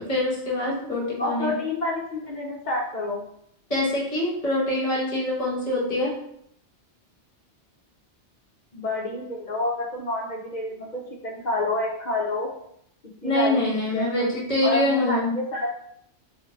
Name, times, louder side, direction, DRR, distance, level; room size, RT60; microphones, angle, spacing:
voice 1, 0.0-1.5 3.7-6.1 13.2-15.3, left 1 dB, 35° left, -4 dB, 1.1 m, -25 dB
voice 2, 1.2-3.2 8.7-12.5 13.0-15.7, left 2 dB, 55° left, -1 dB, 0.5 m, -29 dB
2.7 x 2.5 x 3.8 m, 0.73 s
omnidirectional pair, 1.2 m